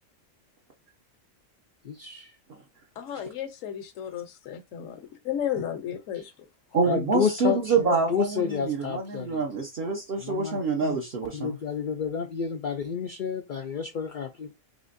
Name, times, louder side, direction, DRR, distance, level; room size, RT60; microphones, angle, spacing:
voice 1, 1.8-2.4 6.1-6.3 6.8-9.4 10.2-11.0 11.3-14.5, left 7 dB, 60° left, 0.5 m, -30 dB
voice 2, 3.0-5.0 5.2-6.5, left 9 dB, 80° left, 1.1 m, -33 dB
voice 3, 6.7-11.5, right 4 dB, 50° right, 1.0 m, -26 dB
5.1 x 3.1 x 2.5 m
omnidirectional pair, 1.4 m